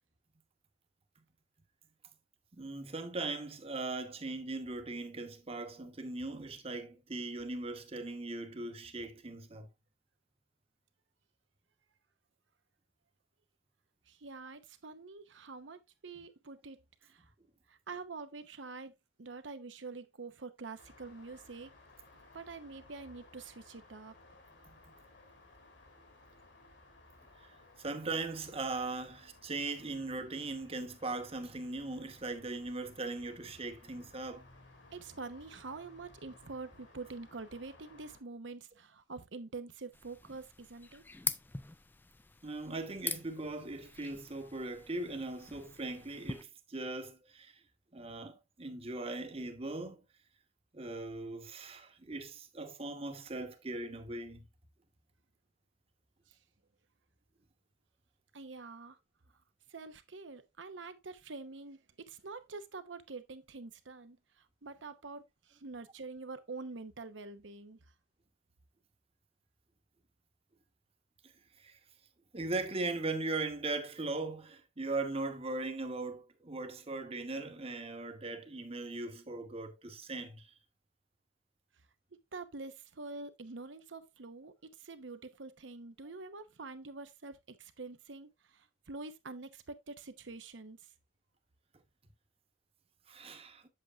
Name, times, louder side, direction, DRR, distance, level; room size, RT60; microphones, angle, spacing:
voice 1, 2.5-9.7 27.8-34.4 42.4-47.6 47.9-50.0 50.7-54.5 71.6-71.8 72.3-80.5 93.1-93.6, right 2 dB, 30° right, 1.0 m, -39 dB
voice 2, 14.1-17.3 17.7-18.9 19.2-21.7 22.3-24.1 34.9-41.0 58.3-59.0 59.7-64.2 64.6-67.8 82.3-90.8, right 3 dB, 80° right, 0.9 m, -46 dB
sound 1, 20.8-38.2, left 2 dB, 70° left, 2.4 m, -60 dB
sound 2, 39.9-46.4, left 4 dB, 10° left, 0.3 m, -43 dB
7.8 x 7.7 x 2.4 m
head